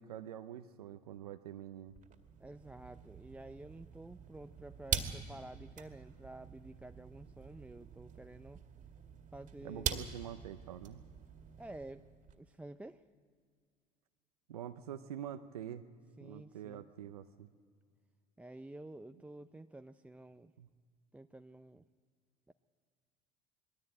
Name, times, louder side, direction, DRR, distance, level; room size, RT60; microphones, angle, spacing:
voice 1, 0.0-1.9 9.6-11.0 14.5-15.8 16.2-17.5 20.6-20.7, right 10 dB, 90° right, 8 dB, 0.7 m, -46 dB
sound 1, 1.9-12.4, right 7 dB, 40° right, 2.0 m, -44 dB
voice 2, 2.4-8.6 9.3-10.1 11.6-12.1 12.4-13.0 16.2-17.1 18.4-20.5 21.1-21.8 22.5-22.6, right 2 dB, 5° right, 9 dB, 0.5 m, -51 dB
21.0 x 15.0 x 8.8 m, 2.1 s
hypercardioid pair, 75°, 19 cm